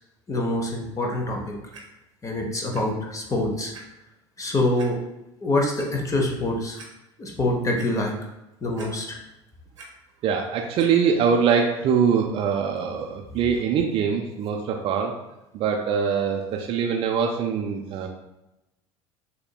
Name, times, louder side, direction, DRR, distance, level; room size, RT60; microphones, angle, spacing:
voice 1, 0.3-1.5 2.2-3.7 4.4-5.0 5.4-6.8 7.2-8.1 8.6-9.2, left 1 dB, 20° left, 0 dB, 0.9 m, -25 dB
Clock, 1.7-1.8 2.7-2.8 3.3-3.4 3.7-3.8 4.8-4.9 5.5-5.9 6.4-6.5 6.8-6.9 7.3-7.9 8.8-9.3 9.5-9.9 10.8-10.9 11.6-11.7, right 4 dB, 75° right, 0.8 m, -45 dB
voice 2, 10.2-15.1 15.5-18.1, right 6 dB, 35° right, 1 dB, 0.5 m, -23 dB
6.4 x 2.9 x 2.2 m, 0.92 s
figure-of-eight pair, 70°, 16 cm